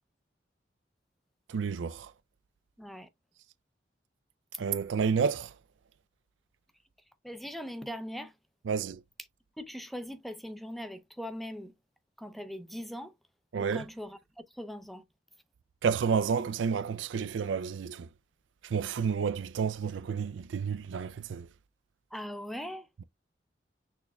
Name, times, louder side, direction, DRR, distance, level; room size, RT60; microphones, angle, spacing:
voice 1, 1.5-2.1 4.6-5.5 8.6-9.0 13.5-13.9 15.8-18.1 18.6-21.5 23.0-23.1, right 6 dB, 75° right, 0.4 m, -30 dB
voice 2, 2.8-3.1 7.2-8.3 9.6-11.7 12.2-13.1 13.6-14.2 14.6-15.0 22.1-22.9, equal, ahead, 0.5 m, -40 dB
6.3 x 3.4 x 2.3 m
head